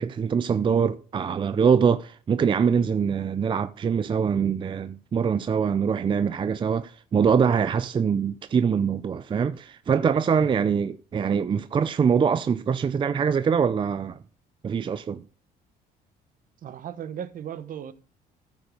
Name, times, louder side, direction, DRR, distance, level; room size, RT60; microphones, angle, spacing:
voice 1, 0.0-14.2 14.6-15.2, right 6 dB, 30° right, 0.5 m, -23 dB
voice 2, 16.6-17.9, right 9 dB, 55° right, 1.0 m, -36 dB
14.0 x 5.1 x 4.8 m
cardioid pair, 110°, 17 cm